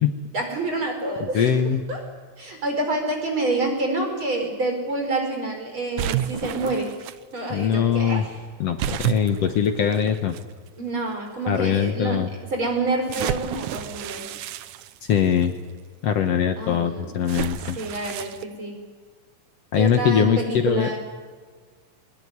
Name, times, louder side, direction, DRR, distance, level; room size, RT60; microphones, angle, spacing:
voice 1, 0.3-1.6 1.9-2.0 2.4-6.9 7.3-8.4 10.8-12.2 12.5-14.3 16.6-17.2 17.8-18.8 19.8-21.0, right 2 dB, 40° right, 3 dB, 5.6 m, -27 dB
voice 2, 1.2-1.8 7.5-8.3 8.6-10.4 11.5-12.3 15.1-15.5 16.0-17.8 19.7-20.9, left 8 dB, 60° left, 7 dB, 2.0 m, -22 dB
sound 1, 6.0-7.2 8.8-10.4 11.2-11.3 13.1-15.4 17.3-18.4, right 12 dB, 85° right, 2.3 m, -30 dB
22.0 x 20.0 x 9.6 m, 1.5 s
omnidirectional pair, 3.4 m